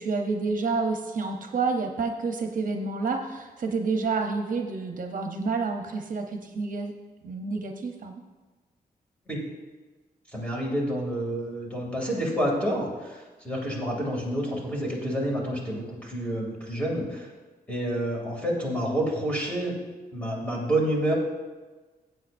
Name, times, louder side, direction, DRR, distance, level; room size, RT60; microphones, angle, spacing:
voice 1, 0.0-6.9 7.2-8.2, right 4 dB, 60° right, 4 dB, 0.8 m, -29 dB
voice 2, 10.3-17.3 17.7-19.8 20.1-21.1, right 1 dB, 10° left, -3 dB, 2.5 m, -28 dB
15.5 x 8.1 x 2.6 m, 1.3 s
wide cardioid pair, 135°, 16 cm